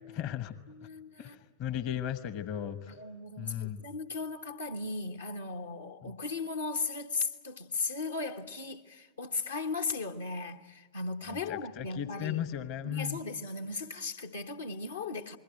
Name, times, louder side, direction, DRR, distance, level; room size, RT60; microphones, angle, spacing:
voice 1, 0.1-0.5 1.2-3.0 3.4-3.8 6.0-6.1 11.3-13.2, left 10 dB, 40° left, 1.0 m, -36 dB
voice 2, 0.7-1.4 2.9-12.5 12.8-15.4, left 3 dB, 75° left, 1.2 m, -37 dB
28.0 x 21.0 x 9.0 m
figure-of-eight pair, 90°, 0 cm